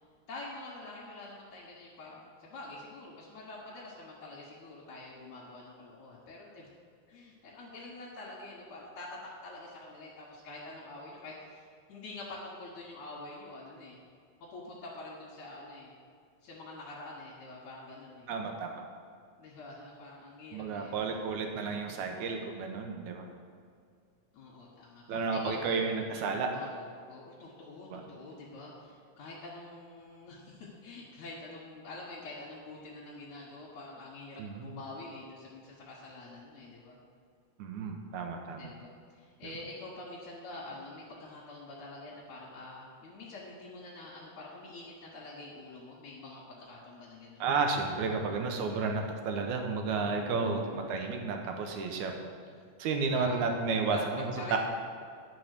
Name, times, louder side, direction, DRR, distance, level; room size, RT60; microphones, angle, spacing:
voice 1, 0.3-6.7 7.1-14.0 14.4-15.9 16.4-18.3 19.4-21.2 24.3-25.8 26.5-37.0 38.6-47.4 48.8-48.9 50.2-50.8 53.1-53.4 53.9-54.6, left 2 dB, 75° left, -6 dB, 2.8 m, -46 dB
voice 2, 18.3-18.7 20.5-23.2 25.1-26.7 27.9-28.0 34.4-34.7 37.6-38.7 47.4-52.1 52.8-54.6, right 4 dB, 85° right, 3 dB, 2.3 m, -32 dB
11.5 x 4.7 x 6.7 m, 2.2 s
omnidirectional pair, 3.4 m